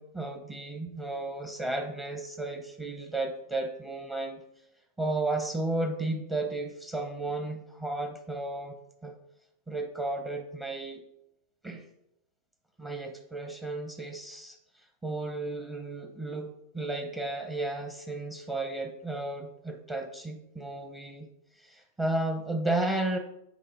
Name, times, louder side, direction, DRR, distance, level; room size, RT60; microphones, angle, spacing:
voice 1, 0.0-4.4 5.0-8.7 9.0-9.1 9.7-11.0 11.6-11.9 12.8-21.3 21.5-23.2, right 2 dB, 15° right, 3 dB, 0.7 m, -33 dB
8.2 x 3.7 x 5.3 m, 0.82 s
supercardioid pair, 135°, 0 cm